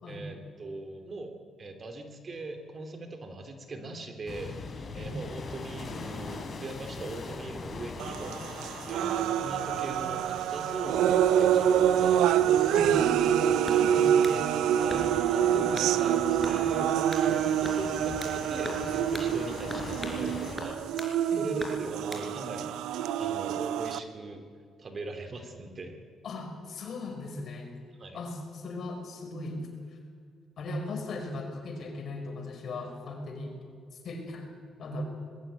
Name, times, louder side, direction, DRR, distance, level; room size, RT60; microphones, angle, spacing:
voice 1, 0.1-4.5 4.9-8.4 8.9-12.3 14.8-16.9 17.2-22.8 23.2-24.4 24.8-26.0 28.0-28.2, right 2 dB, 40° right, 7 dB, 2.9 m, -40 dB
sound 1, 4.3-20.6, left 4 dB, 45° left, 3.9 m, -42 dB
sound 2, 8.0-24.0, right 9 dB, 90° right, 0.7 m, -26 dB
sound 3, 13.7-14.4 14.9-15.3 15.7-15.9 16.4-16.6 17.1-17.3 17.6-18.4 18.6-18.9 19.1-19.3 19.7-20.2 20.6-21.1 21.6-22.3, left 1 dB, 5° left, 4.7 m, -40 dB
voice 2, 13.8-14.8 15.5-15.8 21.3-21.5 26.2-27.8 28.1-29.6 30.6-33.5 34.0-34.5 34.8-35.0, left 2 dB, 60° left, 3 dB, 5.2 m, -38 dB
20.5 x 15.5 x 9.0 m, 2.2 s
cardioid pair, 90°, 0 cm